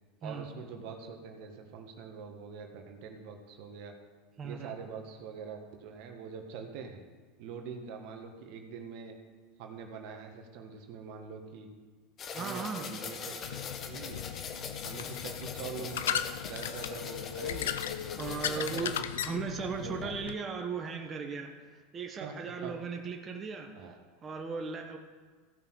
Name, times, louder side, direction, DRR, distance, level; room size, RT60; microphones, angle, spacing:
voice 1, 0.2-3.9 4.4-7.0 7.4-9.2 9.6-11.7 12.3-14.3 14.8-17.8 18.4-19.1 19.3-20.2 22.2-22.3 22.6-22.7 23.7-24.0, right 6 dB, 60° right, 4 dB, 1.5 m, -44 dB
voice 2, 4.4-4.8 12.3-13.0 18.1-18.9 19.2-25.0, right 5 dB, 30° right, 3 dB, 1.2 m, -37 dB
sound 1, 12.2-19.0, left 6 dB, 35° left, 1.2 m, -42 dB
sound 2, 13.4-20.3, left 10 dB, 80° left, 0.5 m, -37 dB
16.0 x 5.6 x 6.4 m, 1.5 s
hypercardioid pair, 95°, 0 cm